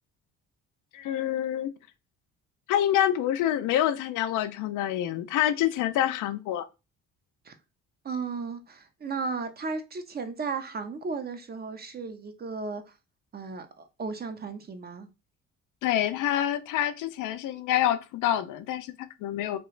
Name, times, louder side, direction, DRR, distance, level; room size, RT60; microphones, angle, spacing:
voice 1, 0.9-1.7 2.7-6.7 15.8-19.6, left 11 dB, 85° left, 0.5 m, -27 dB
voice 2, 8.0-12.8 13.3-15.1, right 4 dB, 30° right, 0.6 m, -35 dB
2.9 x 2.3 x 3.1 m
cardioid pair, 90°, 30 cm